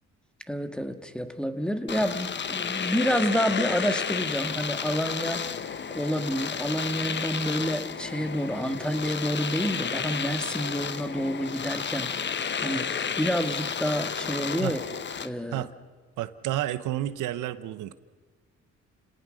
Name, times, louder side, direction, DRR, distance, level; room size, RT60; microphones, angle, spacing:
voice 1, 0.5-5.7 5.9-12.9 13.2-14.8 15.2-15.7, equal, 5° left, 8 dB, 1.7 m, -29 dB
Domestic sounds home sounds, 1.9-15.3, left 6 dB, 35° left, 1.0 m, -32 dB
voice 2, 16.2-17.9, right 13 dB, 90° right, 13 dB, 1.0 m, -30 dB
29.5 x 18.0 x 6.4 m, 1.4 s
cardioid pair, 90°, 30 cm